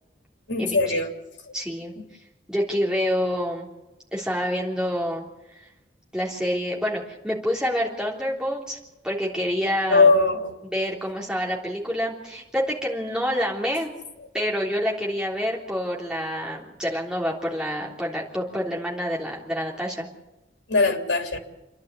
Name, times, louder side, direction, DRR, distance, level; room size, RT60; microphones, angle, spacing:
voice 1, 0.5-1.1 1.5-1.6 2.0-2.1 9.9-10.5 20.7-21.4, left 3 dB, 80° left, 4 dB, 3.0 m, -20 dB
voice 2, 1.5-1.9 2.5-3.7 4.1-5.3 6.1-8.8 9.0-10.1 10.7-13.9 14.3-20.1, equal, 5° right, -3 dB, 3.5 m, -27 dB
28.5 x 11.0 x 8.4 m, 0.99 s
head